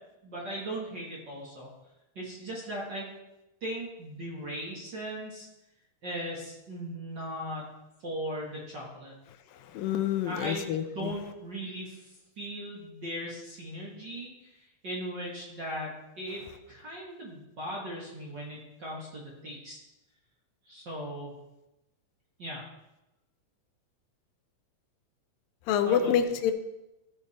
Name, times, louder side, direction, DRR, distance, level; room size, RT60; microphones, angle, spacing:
voice 1, 0.2-1.7 2.1-3.1 3.6-5.5 6.0-7.6 8.0-9.1 10.2-12.1 12.4-19.8 20.6-21.3 22.4-22.6 25.8-26.1, equal, 40° right, -4 dB, 1.7 m, -38 dB
voice 2, 9.7-11.1 25.7-26.5, left 8 dB, 85° left, 8 dB, 2.4 m, -27 dB
15.0 x 5.1 x 4.2 m, 0.93 s
omnidirectional pair, 4.1 m